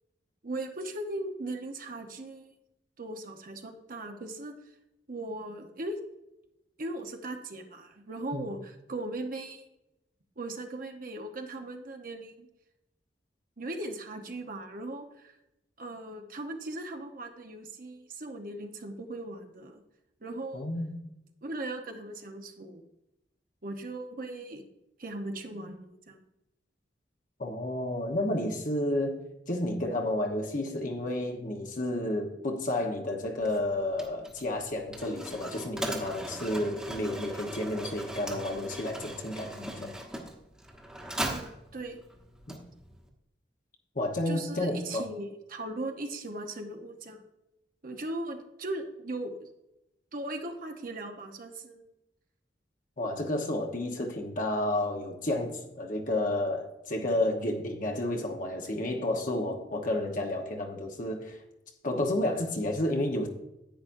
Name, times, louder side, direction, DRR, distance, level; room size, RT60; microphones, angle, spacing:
voice 1, 0.4-2.5 3.0-4.5 5.1-6.0 6.8-9.7 10.4-12.5 13.6-15.4 15.8-19.8 20.2-20.7 21.4-22.8 23.6-24.6 25.0-26.2 41.2-42.0 44.3-47.2 47.8-49.5 50.1-51.8, right 2 dB, 50° right, 1.0 m, -38 dB
voice 2, 20.5-21.0 27.4-39.9 42.5-42.6 43.9-45.0 53.0-61.4 61.8-63.3, left 1 dB, 45° left, 1.1 m, -31 dB
Mechanisms, 33.4-43.1, right 1 dB, 5° right, 1.2 m, -40 dB
10.5 x 8.9 x 2.7 m
head